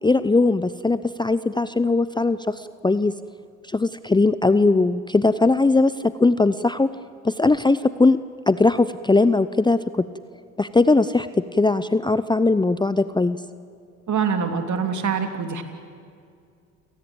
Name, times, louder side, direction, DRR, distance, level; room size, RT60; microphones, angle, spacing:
voice 1, 0.0-3.1 3.7-6.9 7.2-8.2 8.5-10.1 10.6-13.4, left 3 dB, 10° left, 14 dB, 0.7 m, -20 dB
voice 2, 14.1-15.6, right 6 dB, 50° right, 6 dB, 3.1 m, -24 dB
29.0 x 18.5 x 8.8 m, 2.4 s
hypercardioid pair, 55°, 38 cm